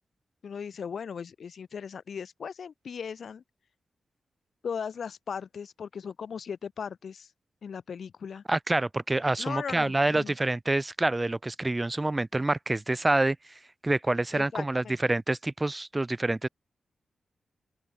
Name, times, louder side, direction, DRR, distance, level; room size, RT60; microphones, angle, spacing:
voice 1, 0.4-3.4 4.6-7.3 7.6-8.4 9.4-10.3 14.3-15.0, left 6 dB, 70° left, 4.0 m, -38 dB
voice 2, 8.5-13.5 13.8-16.5, right 2 dB, 20° right, 1.5 m, -27 dB
open air
cardioid pair, 75°, 0 cm